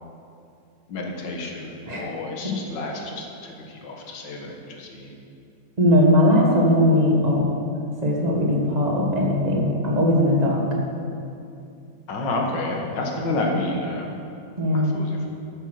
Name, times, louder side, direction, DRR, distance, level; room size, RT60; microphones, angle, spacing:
voice 1, 0.9-5.1 12.1-14.1 14.7-15.3, left 2 dB, 85° left, 1 dB, 2.0 m, -30 dB
voice 2, 5.8-7.5 8.0-10.6 14.6-15.0, left 1 dB, 25° right, -2 dB, 1.5 m, -19 dB
9.1 x 8.7 x 6.4 m, 2.6 s
omnidirectional pair, 1.9 m